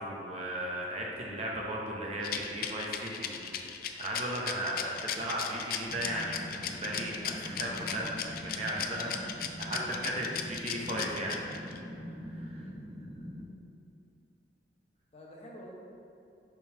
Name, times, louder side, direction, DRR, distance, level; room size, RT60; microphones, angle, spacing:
voice 1, 0.0-4.8 5.2-11.4 12.3-12.7, right 1 dB, 35° right, -2 dB, 0.8 m, -36 dB
Rattle, 2.2-11.8, left 9 dB, 50° left, 0.3 m, -36 dB
voice 2, 4.6-5.3 9.7-10.1 12.5-12.7 15.1-15.7, equal, 35° left, -3 dB, 0.8 m, -47 dB
sound 1, 5.9-13.5, equal, 5° right, 0.8 m, -43 dB
4.6 x 3.7 x 5.5 m, 2.7 s
head